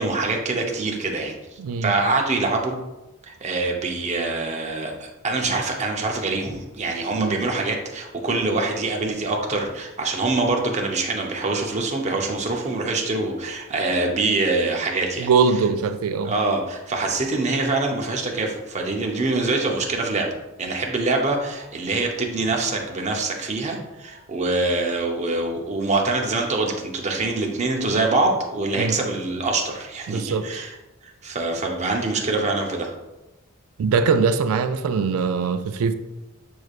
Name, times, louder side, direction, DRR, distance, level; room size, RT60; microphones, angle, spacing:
voice 1, 0.0-2.8 3.3-15.3 16.2-20.3 20.6-30.7 31.0-32.9, right 3 dB, 35° right, 1 dB, 0.6 m, -24 dB
voice 2, 1.6-1.9 7.1-7.4 15.2-16.3 28.8-29.0 30.1-30.5 33.8-35.9, right 5 dB, 80° right, 11 dB, 0.3 m, -22 dB
6.2 x 3.2 x 2.4 m, 1.0 s
head